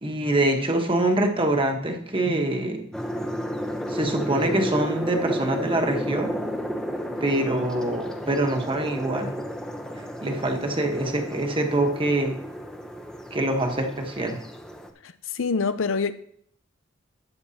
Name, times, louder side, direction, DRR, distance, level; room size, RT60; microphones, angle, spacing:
voice 1, 0.0-2.9 3.9-6.3 7.2-9.4 10.2-12.4 13.3-14.4, right 1 dB, 25° right, 1.2 m, -25 dB
sound 1, 2.9-14.9, equal, 5° left, 0.8 m, -33 dB
voice 2, 15.0-16.1, left 5 dB, 80° left, 0.6 m, -26 dB
12.0 x 8.8 x 2.8 m
head